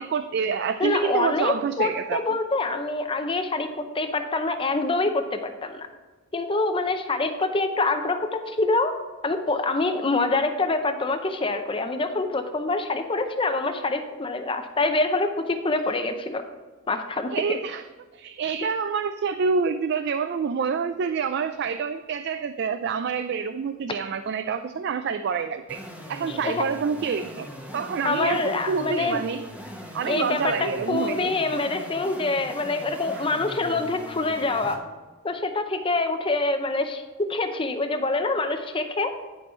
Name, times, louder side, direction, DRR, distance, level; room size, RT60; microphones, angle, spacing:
voice 1, 0.0-2.2 17.3-17.8 18.1-25.8 26.1-27.5 27.7-29.5 29.9-31.3 33.1-33.4, right 5 dB, 55° right, 10 dB, 0.3 m, -27 dB
voice 2, 0.8-3.7 3.9-5.9 6.3-8.9 9.2-16.4 16.9-17.3 26.3-26.6 28.0-29.2 30.0-34.8 35.2-39.1, left 3 dB, 25° left, 7 dB, 0.6 m, -25 dB
sound 1, 25.7-34.8, equal, 5° right, 0.9 m, -40 dB
10.5 x 5.4 x 4.3 m, 1.3 s
head